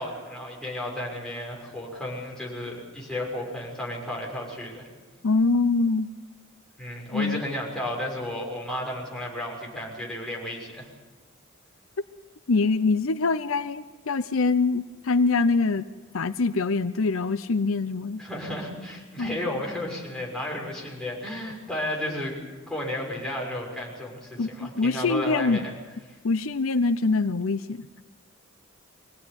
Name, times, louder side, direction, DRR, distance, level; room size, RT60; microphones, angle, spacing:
voice 1, 0.0-4.9 6.8-10.9 18.2-22.4 22.7-25.7, left 1 dB, 5° left, -3 dB, 6.7 m, -33 dB
voice 2, 5.2-6.1 7.1-7.4 12.5-15.9 16.1-18.2 19.2-19.3 24.4-25.7 26.2-27.9, left 3 dB, 70° left, 11 dB, 0.7 m, -24 dB
24.0 x 18.0 x 9.7 m, 1.3 s
head